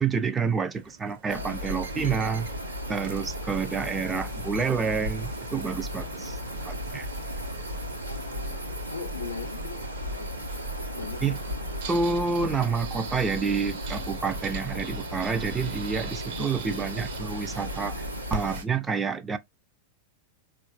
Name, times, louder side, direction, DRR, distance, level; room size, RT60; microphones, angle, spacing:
voice 1, 0.0-2.5 2.9-6.4 6.6-7.1 11.2-11.4 11.9-19.4, right 5 dB, 15° right, 0.3 m, -28 dB
sound 1, 0.7-18.7, right 6 dB, 50° right, 0.7 m, -45 dB
sound 2, 1.3-18.6, equal, 85° right, 0.9 m, -35 dB
voice 2, 8.0-10.4 10.9-11.9, left 5 dB, 70° left, 0.5 m, -41 dB
3.8 x 2.3 x 2.3 m
figure-of-eight pair, 90°, 0 cm